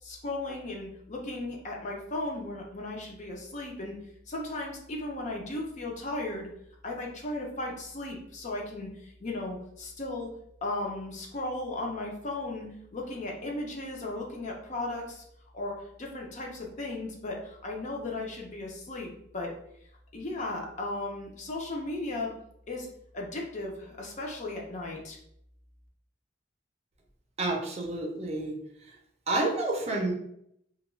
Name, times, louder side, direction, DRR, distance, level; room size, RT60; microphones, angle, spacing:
voice 1, 0.0-4.0 4.3-6.5 6.8-10.3 10.6-15.2 15.5-19.5 20.1-22.4 22.7-22.9 23.1-25.2, left 2 dB, 40° left, 0 dB, 0.5 m, -36 dB
voice 2, 27.4-28.6 28.8-29.0 29.3-30.1, right 2 dB, 35° right, 0 dB, 0.5 m, -29 dB
2.3 x 2.3 x 3.1 m, 0.74 s
head